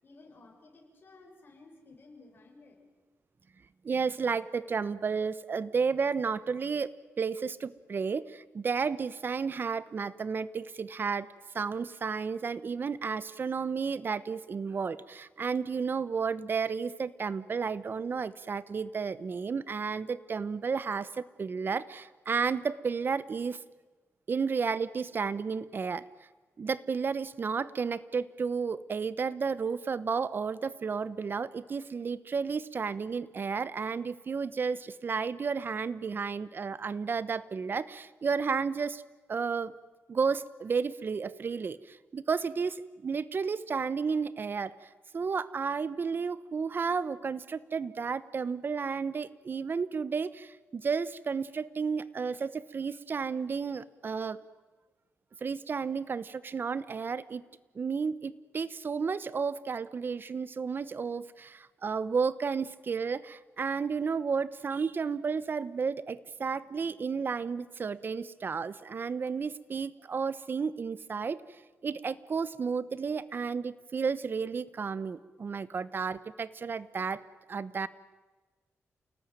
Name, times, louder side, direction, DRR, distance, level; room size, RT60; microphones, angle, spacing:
voice 1, 0.0-2.8, left 3 dB, 45° left, 0 dB, 6.6 m, -55 dB
voice 2, 3.8-6.9 7.2-11.3 11.5-23.6 24.3-26.0 26.6-39.0 39.3-39.7 40.1-54.4 55.4-57.4 57.7-71.4 71.8-77.2 77.5-77.9, right 5 dB, 45° right, 17 dB, 1.0 m, -32 dB
29.0 x 18.5 x 9.2 m, 1.3 s
cardioid pair, 100°, 5 cm